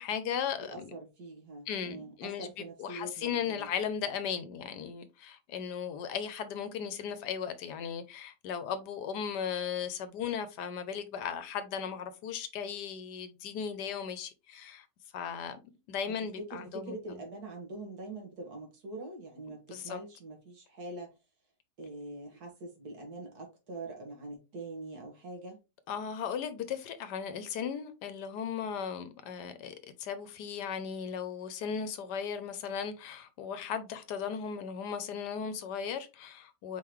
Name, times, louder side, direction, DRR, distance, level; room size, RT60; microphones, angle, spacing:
voice 1, 0.0-0.9 1.7-14.9 15.1-15.6 15.9-17.2 19.7-20.0 25.9-36.8, left 7 dB, 75° left, 1.3 m, -37 dB
voice 2, 0.6-3.7 16.1-21.2 21.8-25.6, right 2 dB, 65° right, 1.9 m, -44 dB
4.5 x 3.8 x 3.1 m
omnidirectional pair, 1.8 m